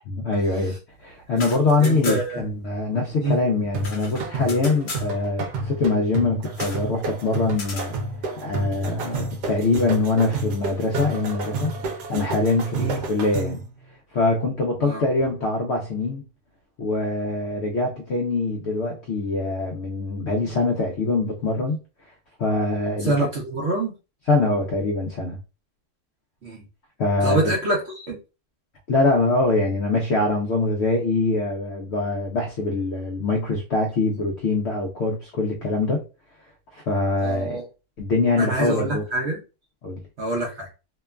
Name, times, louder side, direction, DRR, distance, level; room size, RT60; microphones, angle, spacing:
voice 1, 0.2-8.0 8.4-11.7 12.1-13.6 14.1-16.2 16.8-21.8 22.4-23.1 24.3-25.4 27.0-27.5 28.9-36.0 36.7-37.6 38.0-39.0 39.8-40.0, left 3 dB, 85° left, 0.6 m, -23 dB
sound 1, 1.2-2.5 2.7-2.8 3.1-5.1 6.5-6.9 7.5-7.9, left 3 dB, 50° left, 0.8 m, -36 dB
voice 2, 1.8-2.4 3.2-3.4 12.8-13.0 14.8-15.0 23.0-23.9 26.4-26.6 27.2-28.2 37.2-37.6 38.4-39.4 40.2-40.7, right 2 dB, 60° right, 0.7 m, -25 dB
sound 2, 3.7-13.7, right 2 dB, 80° right, 1.2 m, -31 dB
2.9 x 2.2 x 2.2 m
omnidirectional pair, 1.8 m